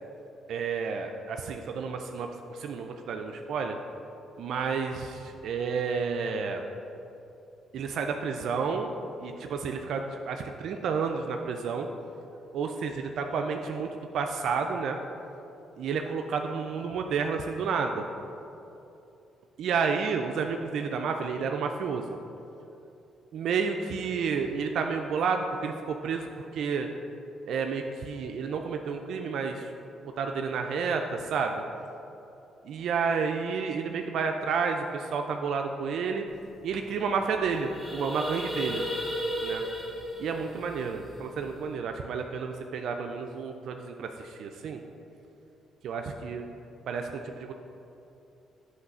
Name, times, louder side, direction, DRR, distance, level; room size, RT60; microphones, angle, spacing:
voice 1, 0.5-3.8 4.4-6.6 7.7-8.9 9.2-11.9 12.5-15.0 15.8-18.1 19.6-22.2 23.3-26.9 27.5-29.7 30.0-31.6 32.6-36.3 36.6-38.9 39.4-39.6 40.2-44.8 45.8-46.5 46.9-47.5, right 5 dB, 75° right, 4 dB, 0.3 m, -30 dB
sound 1, 36.4-36.5 36.7-37.0 37.3-41.7, equal, 5° left, 1.0 m, -35 dB
8.0 x 3.1 x 5.3 m, 2.9 s
cardioid pair, 90°, 0 cm